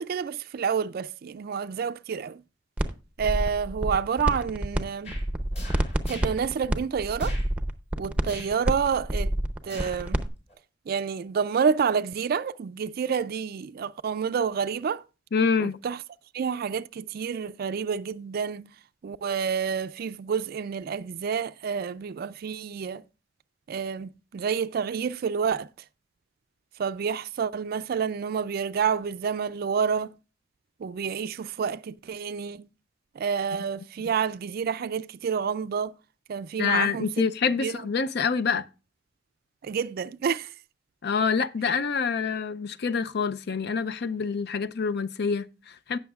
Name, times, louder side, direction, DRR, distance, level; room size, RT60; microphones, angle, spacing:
voice 1, 0.0-2.4 3.2-5.1 6.1-7.4 8.0-9.3 9.6-10.2 10.9-15.0 15.6-16.0 16.3-18.7 19.0-23.0 23.7-25.7 26.8-30.1 30.8-32.7 33.2-35.9 36.3-37.3 37.6-37.9 39.6-40.5, right 6 dB, 55° right, 0.3 m, -29 dB
sound 1, 2.8-2.9 3.2-4.8 5.1-10.3, right 1 dB, 5° right, 0.6 m, -27 dB
sound 2, 5.0-5.3 5.5-6.4 7.2-7.5 8.3-8.6 9.6-10.1 10.5-10.6, left 1 dB, 35° left, 4.6 m, -42 dB
voice 2, 15.3-15.8 36.6-38.7 41.0-46.0, left 5 dB, 60° left, 0.5 m, -26 dB
17.0 x 6.3 x 2.4 m
head